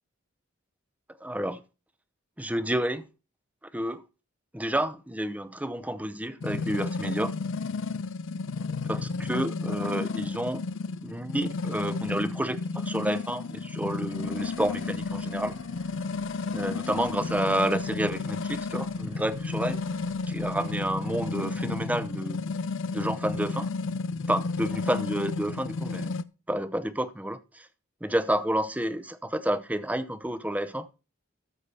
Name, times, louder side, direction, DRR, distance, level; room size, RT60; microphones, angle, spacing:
voice 1, 1.2-1.6 2.4-3.1 3.7-4.0 4.5-7.3 8.9-10.6 11.0-15.6 16.5-19.8 20.3-22.4 22.9-23.7 24.3-26.1 26.5-27.7 28.0-30.9, right 1 dB, 5° right, 0.7 m, -30 dB
sound 1, 6.4-26.2, left 4 dB, 65° left, 0.5 m, -32 dB
sound 2, 14.1-21.3, right 1 dB, 25° right, 1.4 m, -54 dB
13.5 x 4.8 x 4.2 m
head